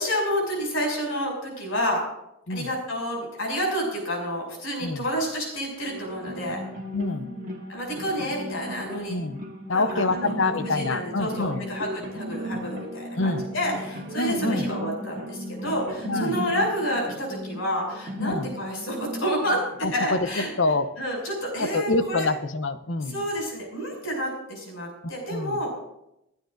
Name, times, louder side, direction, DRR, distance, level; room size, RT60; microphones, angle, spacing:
voice 1, 0.0-2.0 2.5-6.6 7.7-9.2 9.7-10.3 10.6-19.6 19.9-20.5 21.0-22.3 23.1-25.7, equal, 80° left, -1 dB, 6.4 m, -29 dB
sound 1, 5.8-20.8, equal, 40° right, 1.8 m, -36 dB
voice 2, 6.9-7.3 9.1-9.4 9.7-11.6 13.2-13.5 14.2-14.7 16.1-16.4 18.2-18.5 19.8-20.9 21.6-23.3 25.0-25.6, left 3 dB, 65° left, 11 dB, 0.8 m, -26 dB
28.5 x 9.9 x 2.6 m, 0.83 s
head